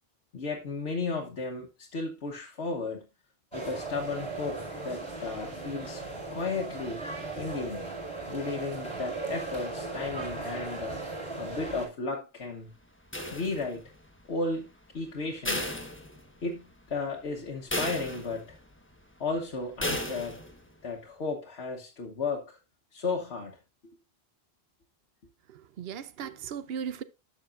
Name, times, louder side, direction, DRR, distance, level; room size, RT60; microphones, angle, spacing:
voice 1, 0.3-3.1 3.5-6.0 6.3-7.0 7.4-7.9 8.3-11.0 11.4-12.7 13.3-13.8 14.3-14.7 14.9-15.7 16.4-18.6 19.2-20.4 20.8-22.6 22.9-23.6, left 3 dB, 90° left, 1.4 m, -34 dB
sound 1, 3.5-11.9, right 3 dB, 30° left, 4.8 m, -37 dB
sound 2, 13.1-13.9 15.4-16.6 17.0-17.1 17.7-18.6 19.8-20.6, left 1 dB, 10° left, 1.3 m, -34 dB
voice 2, 25.5-27.0, right 7 dB, 70° right, 0.9 m, -37 dB
11.5 x 6.6 x 2.5 m
omnidirectional pair, 1.1 m